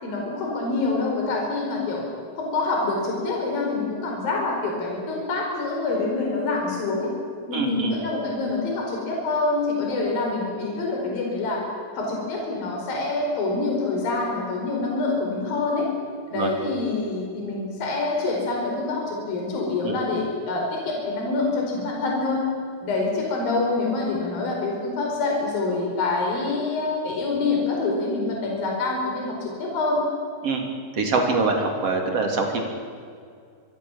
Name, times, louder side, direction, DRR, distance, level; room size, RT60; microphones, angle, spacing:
voice 1, 0.0-2.0 2.4-7.1 7.5-11.6 11.9-15.9 16.3-22.5 22.8-30.1, left 3 dB, 55° left, 0 dB, 6.3 m, -26 dB
voice 2, 7.5-8.0 16.3-16.5 19.8-20.0 30.4-30.7 30.9-32.6, right 3 dB, 40° right, 2 dB, 3.8 m, -24 dB
27.0 x 23.0 x 7.4 m, 2.2 s
omnidirectional pair, 5.0 m